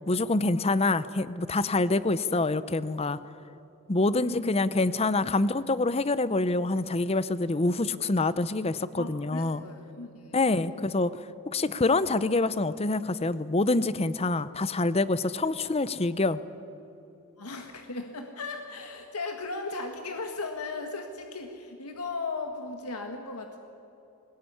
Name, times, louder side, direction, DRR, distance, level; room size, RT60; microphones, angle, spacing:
voice 1, 0.1-3.2 3.9-9.6 10.3-11.2 11.5-16.4, left 2 dB, 25° left, 16 dB, 0.6 m, -26 dB
voice 2, 4.2-4.5 5.2-5.3 9.0-10.8 17.4-23.6, left 3 dB, 85° left, 4 dB, 1.7 m, -37 dB
21.5 x 19.5 x 9.8 m, 3.0 s
head